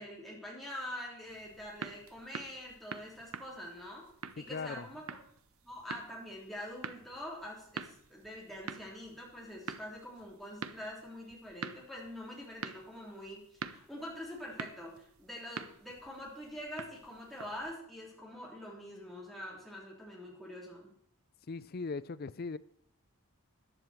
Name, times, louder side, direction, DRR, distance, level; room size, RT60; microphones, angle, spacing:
voice 1, 0.0-4.1 4.4-5.2 5.6-20.9, left 1 dB, ahead, -4 dB, 3.8 m, -45 dB
sound 1, 1.3-17.8, right 5 dB, 70° right, 0.8 m, -47 dB
voice 2, 4.4-4.9 21.5-22.6, left 4 dB, 45° left, 17 dB, 0.4 m, -39 dB
14.5 x 10.5 x 4.6 m, 0.68 s
head